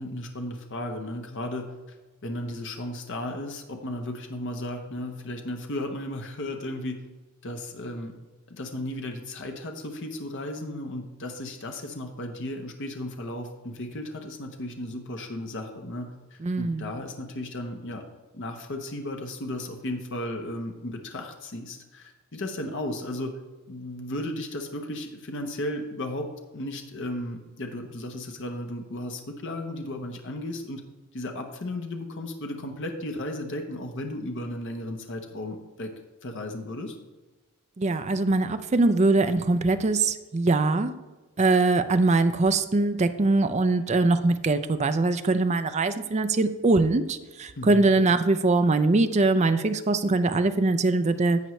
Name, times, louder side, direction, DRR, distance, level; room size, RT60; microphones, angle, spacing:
voice 1, 0.0-1.7 2.2-7.0 7.4-8.2 8.5-18.0 18.3-23.4 23.7-30.8 31.1-35.9 36.2-37.0 47.6-47.9, left 1 dB, 55° left, 4 dB, 0.9 m, -35 dB
voice 2, 16.4-16.9 37.8-40.9 41.4-51.4, right 3 dB, 30° right, 10 dB, 0.4 m, -22 dB
10.5 x 7.9 x 3.1 m, 1.2 s
head